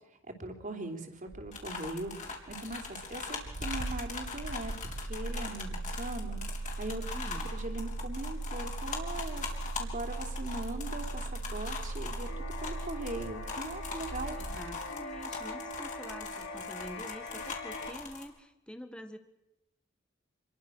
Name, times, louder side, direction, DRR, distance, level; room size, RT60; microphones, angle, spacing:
voice 1, 0.3-4.7 5.0-6.4 6.8-7.0 7.5-9.5 9.8-14.4, right 2 dB, 40° right, 5 dB, 3.3 m, -40 dB
Engine starting, 1.3-15.4, right 2 dB, 70° right, 0.9 m, -39 dB
sound 1, 1.5-18.2, left 4 dB, 40° left, 4.2 m, -41 dB
voice 2, 7.1-7.5 14.4-19.2, equal, 5° left, 8 dB, 1.6 m, -46 dB
sound 2, 12.3-17.9, left 3 dB, 60° left, 6.9 m, -42 dB
27.0 x 22.0 x 6.4 m, 0.89 s
head